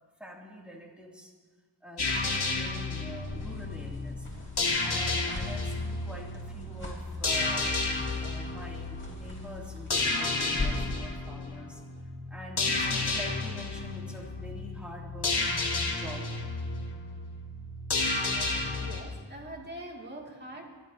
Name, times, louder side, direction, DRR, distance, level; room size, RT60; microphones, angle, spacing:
voice 1, 0.2-1.3 1.8-4.3 4.8-7.7 8.2-11.8 12.3-15.6 16.0-16.3, equal, ahead, -2 dB, 2.7 m, -45 dB
sound 1, 2.0-19.0, left 3 dB, 60° left, 2.1 m, -32 dB
sound 2, 3.0-11.0, left 2 dB, 25° left, 3.5 m, -41 dB
voice 2, 18.8-20.8, right 1 dB, 25° right, -1 dB, 2.4 m, -43 dB
27.0 x 12.0 x 2.8 m, 1.4 s
wide cardioid pair, 90°, 45 cm